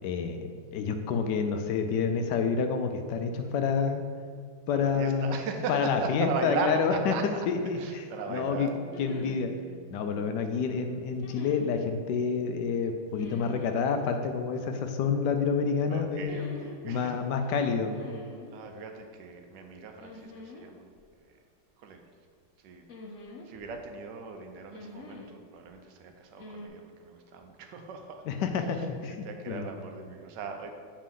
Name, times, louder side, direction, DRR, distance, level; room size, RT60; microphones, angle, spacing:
voice 1, 0.0-4.0 4.7-5.3 5.7-8.7 9.0-9.5 9.9-16.5 16.8-18.0 28.3-29.7, left 5 dB, 75° left, 6 dB, 1.1 m, -28 dB
voice 2, 4.7-7.2 7.7-8.8 15.9-17.3 18.5-20.9 21.2-21.4 21.8-22.0 22.6-22.9 23.4-28.2 28.6-30.8, right 4 dB, 80° right, 5 dB, 1.3 m, -38 dB
Bass guitar, 8.4-12.8, right 4 dB, 65° right, 0.9 m, -53 dB
sound 1, 8.9-9.5 11.2-11.7 13.1-13.7 16.2-16.8 17.9-18.6 20.0-20.7 20.9-21.0 22.9-23.8 24.7-25.3 26.4-26.7, left 2 dB, 55° left, 0.9 m, -44 dB
7.4 x 4.5 x 3.7 m, 2.1 s
omnidirectional pair, 1.9 m